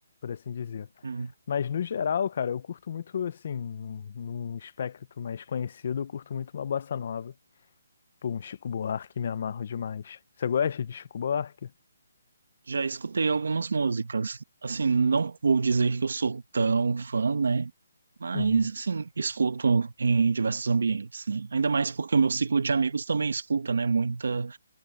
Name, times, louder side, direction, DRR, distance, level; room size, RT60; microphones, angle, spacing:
voice 1, 0.2-0.9 1.5-7.3 8.2-11.7 18.3-18.7, left 7 dB, 35° left, 0.7 m, -32 dB
voice 2, 12.7-17.7 18.2-24.6, right 4 dB, 70° right, 1.5 m, -26 dB
hypercardioid pair, 180°, 0 cm